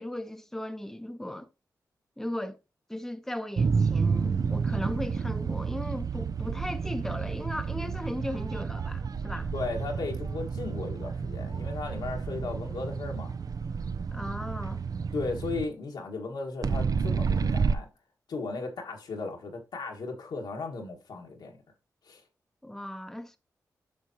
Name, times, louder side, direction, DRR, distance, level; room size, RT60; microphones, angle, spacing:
voice 1, 0.0-1.5 2.2-2.6 2.9-9.5 14.1-14.8 22.6-23.4, left 1 dB, 5° left, 0.8 m, -37 dB
sound 1, 3.6-15.7 16.6-17.8, right 5 dB, 60° right, 0.5 m, -30 dB
voice 2, 9.5-13.3 14.1-14.2 15.1-17.9 18.3-21.6 22.1-22.2, left 3 dB, 80° left, 1.6 m, -36 dB
8.3 x 5.8 x 2.8 m
cardioid pair, 45°, 7 cm